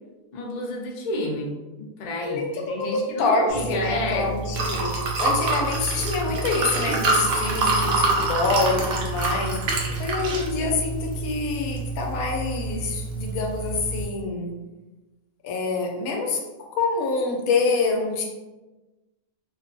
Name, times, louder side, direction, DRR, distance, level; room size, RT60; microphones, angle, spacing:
voice 1, 0.3-4.3, left 1 dB, 70° left, -1 dB, 0.4 m, -30 dB
voice 2, 2.2-14.6 15.4-16.4 16.7-18.2, left 3 dB, 90° left, 1 dB, 1.0 m, -26 dB
Liquid, 3.5-14.0, right 3 dB, 65° right, 0.6 m, -26 dB
2.5 x 2.3 x 2.5 m, 1.1 s
omnidirectional pair, 1.4 m